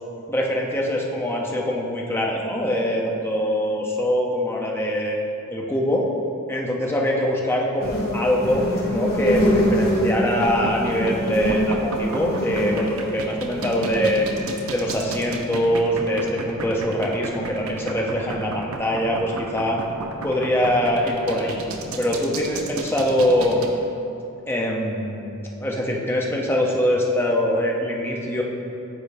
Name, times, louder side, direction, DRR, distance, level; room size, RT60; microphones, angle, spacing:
voice 1, 0.3-5.2 5.5-6.1 6.5-14.3 14.7-19.8 20.2-21.6 22.0-23.6 24.5-25.3 25.6-28.4, equal, 10° left, -1 dB, 0.6 m, -23 dB
sound 1, 7.8-14.4, equal, 50° left, 1.2 m, -24 dB
wet slaps, 10.2-23.7, right 3 dB, 80° right, 0.5 m, -32 dB
8.9 x 4.0 x 3.3 m, 2.8 s
head